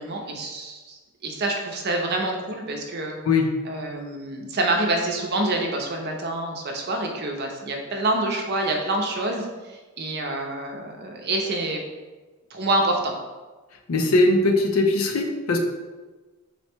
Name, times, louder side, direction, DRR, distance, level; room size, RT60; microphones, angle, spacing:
voice 1, 0.0-3.2 3.7-11.8 12.5-13.1, right 2 dB, 50° right, 2 dB, 0.6 m, -27 dB
voice 2, 13.9-15.6, left 2 dB, 80° left, 3 dB, 0.5 m, -20 dB
4.2 x 2.2 x 4.3 m, 1.2 s
head